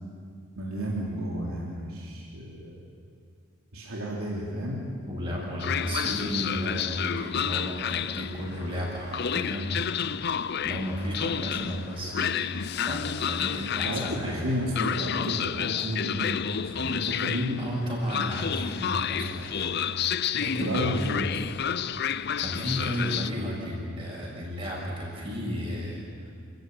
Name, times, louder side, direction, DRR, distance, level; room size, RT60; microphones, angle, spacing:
voice 1, 0.6-2.8 3.7-4.8 13.8-17.6 20.4-21.3, equal, 75° right, -4 dB, 3.5 m, -32 dB
voice 2, 5.1-9.7 10.6-12.5 12.9-14.6 17.6-19.8 20.4-21.1 22.4-26.0, equal, 25° right, -3 dB, 6.6 m, -33 dB
Train, 5.6-23.3, left 8 dB, 50° left, 0.5 m, -30 dB
29.0 x 14.5 x 9.3 m, 2.3 s
head